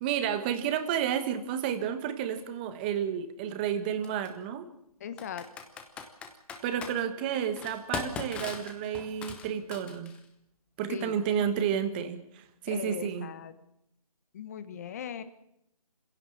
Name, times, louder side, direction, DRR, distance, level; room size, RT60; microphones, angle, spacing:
voice 1, 0.0-4.7 6.6-10.2 10.8-13.3, right 9 dB, 15° right, 10 dB, 1.3 m, -31 dB
Computer keyboard, 2.4-2.5 4.0-4.3 5.2-6.9 7.6-10.2, left 6 dB, 5° left, 0.9 m, -39 dB
voice 2, 5.0-5.5 10.9-11.8 12.7-13.5 14.3-15.2, left 8 dB, 25° left, 12 dB, 1.2 m, -39 dB
24.5 x 16.5 x 7.1 m, 0.81 s
figure-of-eight pair, 160°, 19 cm